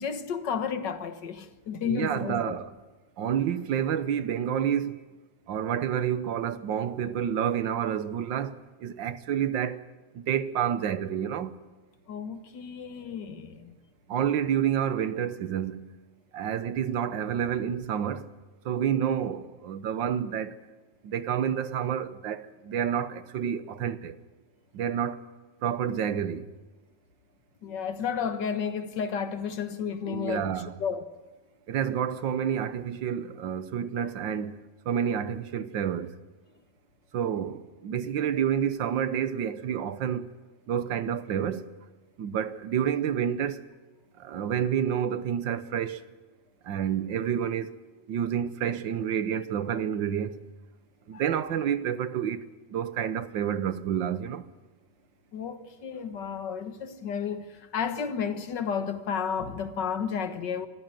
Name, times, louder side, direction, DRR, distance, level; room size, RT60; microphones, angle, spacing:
voice 1, 0.0-2.6 12.1-13.8 27.6-30.5 30.8-31.1 51.1-51.2 55.3-60.7, left 7 dB, 70° left, 2.0 m, -32 dB
voice 2, 1.8-2.7 3.2-5.0 5.5-9.8 10.1-11.5 14.1-15.9 16.3-18.3 18.6-20.6 21.0-24.2 24.7-25.2 25.6-26.5 30.1-30.7 31.7-34.6 34.8-36.2 37.1-40.3 40.7-41.7 42.2-43.6 44.2-46.0 46.6-47.8 48.1-50.4 51.1-54.4, right 9 dB, 85° right, 1.7 m, -29 dB
25.0 x 14.5 x 9.1 m
omnidirectional pair, 2.0 m